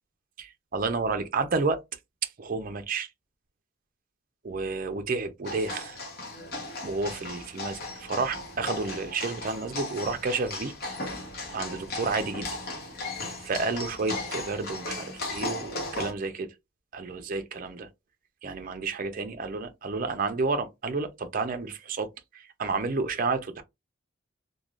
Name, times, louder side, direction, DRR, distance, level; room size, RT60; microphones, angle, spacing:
voice 1, 0.4-1.8 2.4-3.1 4.4-6.0 6.8-10.7 11.5-12.5 13.4-16.5 16.9-17.9 18.4-22.1 22.3-23.6, right 4 dB, 45° right, 0.4 m, -30 dB
sound 1, 5.4-16.1, left 2 dB, 50° left, 1.0 m, -36 dB
3.1 x 2.2 x 2.4 m
head